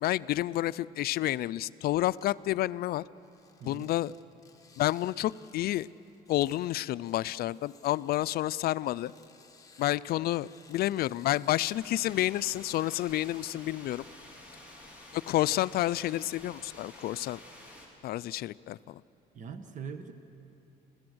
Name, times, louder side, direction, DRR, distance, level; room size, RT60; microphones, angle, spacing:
voice 1, 0.0-3.0 3.6-4.1 4.8-5.9 6.3-9.1 9.8-14.0 15.1-17.4 18.0-19.0, left 15 dB, 65° left, 18 dB, 0.5 m, -30 dB
sound 1, 2.2-2.6 3.2-14.3 14.8-15.5, left 5 dB, 20° left, 1.8 m, -60 dB
voice 2, 3.6-3.9 19.3-20.1, right 6 dB, 50° right, 8 dB, 1.4 m, -41 dB
sound 2, 11.6-17.9, left 1 dB, 10° right, 4.7 m, -50 dB
27.5 x 16.0 x 7.9 m, 3.0 s
cardioid pair, 110°, 17 cm